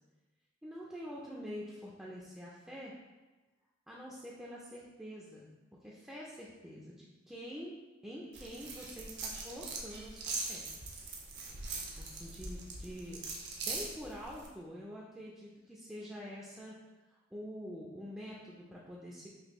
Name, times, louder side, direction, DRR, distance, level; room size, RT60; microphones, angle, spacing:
voice 1, 0.6-2.9 3.9-5.5 5.8-7.7 8.0-10.7 12.0-13.2 13.6-16.8 17.1-19.3, equal, 5° right, -5 dB, 0.3 m, -46 dB
sound 1, 8.3-14.5, right 3 dB, 60° right, 0.6 m, -42 dB
4.2 x 2.7 x 3.0 m, 1.2 s
head